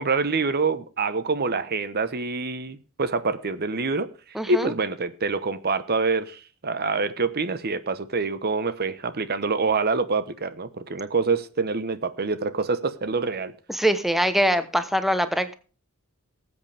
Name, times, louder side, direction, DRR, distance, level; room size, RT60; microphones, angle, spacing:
voice 1, 0.0-4.1 4.5-13.5, right 4 dB, 45° right, 1.0 m, -26 dB
voice 2, 4.3-4.7 13.7-15.5, equal, ahead, 0.9 m, -23 dB
19.0 x 8.3 x 3.4 m
head